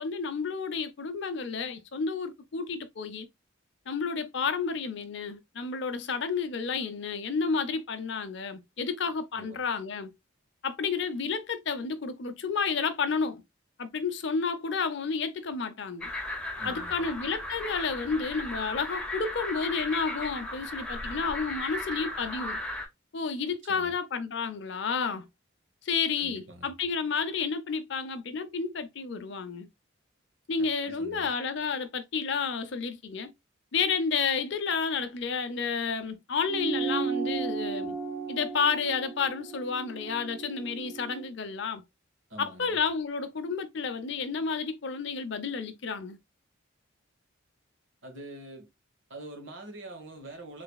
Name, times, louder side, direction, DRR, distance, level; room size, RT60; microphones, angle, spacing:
voice 1, 0.0-3.3 3.9-10.1 10.6-13.4 13.8-16.1 16.6-22.6 23.1-25.3 25.8-29.7 30.5-33.3 33.7-38.0 38.3-41.8 42.4-46.2, left 5 dB, 60° left, 0.6 m, -31 dB
sound 1, 16.0-22.9, left 1 dB, 5° left, 0.6 m, -36 dB
voice 2, 16.6-17.1 23.7-23.9 26.2-26.7 30.6-31.3 42.3-42.8 48.0-48.7 49.1-50.6, right 1 dB, 65° right, 1.2 m, -45 dB
sound 2, 36.5-41.3, right 5 dB, 25° right, 2.0 m, -34 dB
3.9 x 3.3 x 2.2 m
head